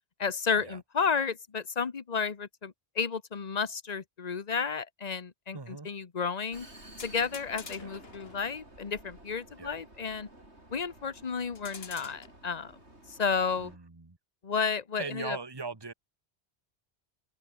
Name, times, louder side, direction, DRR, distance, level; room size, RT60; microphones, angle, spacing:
voice 1, 0.2-6.7 7.0-10.3 10.7-12.7 13.1-13.7 14.4-15.4, left 5 dB, 40° left, 1.2 m, -32 dB
voice 2, 5.5-5.9 7.8-7.9 9.6-9.8 13.6-14.2 15.0-15.9, right 4 dB, 25° right, 1.5 m, -40 dB
Vehicle, 6.5-13.8, right 1 dB, 90° right, 7.9 m, -53 dB
sound 1, 7.0-8.4 11.5-12.3, left 5 dB, 65° left, 1.8 m, -47 dB
omnidirectional pair, 1.1 m